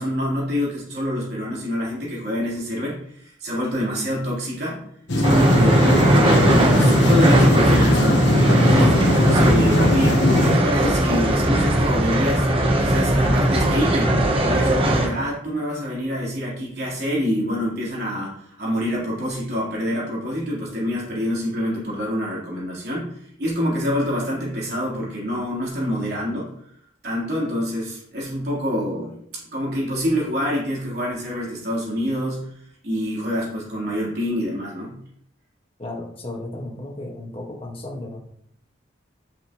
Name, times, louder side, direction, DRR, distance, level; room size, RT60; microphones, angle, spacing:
voice 1, 0.0-4.8 5.1-5.9 6.3-12.5 12.8-14.1 14.4-26.5 27.0-29.1 29.5-32.5 32.8-34.9, equal, 55° right, -5 dB, 3.9 m, -26 dB
sound 1, 5.1-10.6, left 1 dB, 70° left, 1.2 m, -19 dB
sound 2, 5.2-15.1, right 1 dB, 30° right, 1.1 m, -19 dB
voice 2, 8.7-9.1 35.8-38.2, left 1 dB, 30° left, 0 dB, 1.7 m, -33 dB
10.5 x 6.8 x 3.1 m, 0.69 s
head